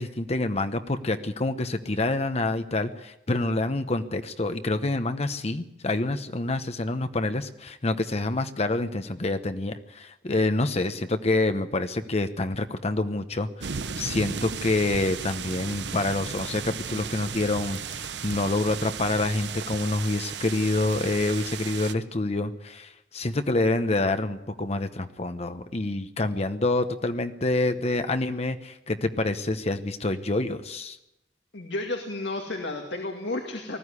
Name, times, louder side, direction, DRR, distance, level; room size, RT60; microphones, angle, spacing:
voice 1, 0.0-31.0, left 2 dB, 35° left, 9 dB, 0.9 m, -27 dB
sound 1, 13.6-21.9, right 6 dB, 80° right, 1.0 m, -35 dB
voice 2, 31.5-33.8, left 2 dB, 90° left, 3 dB, 2.3 m, -32 dB
19.5 x 15.0 x 9.8 m, 0.89 s
head